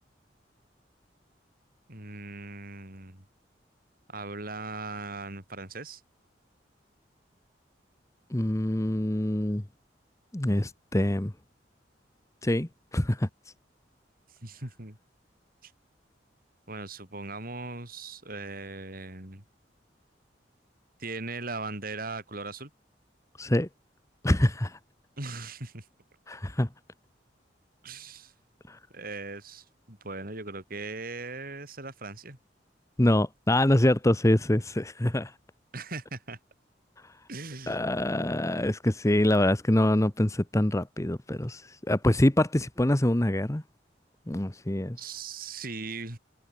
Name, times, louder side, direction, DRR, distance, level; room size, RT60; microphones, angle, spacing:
voice 1, 1.9-3.2 4.1-6.0 14.4-15.0 15.6-15.7 16.7-19.4 21.0-22.7 25.2-25.9 27.8-28.3 28.9-32.4 35.7-36.4 37.3-37.8 45.0-46.2, right 3 dB, 55° right, 6.3 m, -39 dB
voice 2, 8.3-9.6 10.3-11.3 12.4-13.3 23.4-23.7 24.2-24.8 26.3-26.7 28.7-28.8 33.0-35.3 37.7-41.6 41.9-43.6 44.3-45.0, left 1 dB, 15° left, 1.0 m, -25 dB
head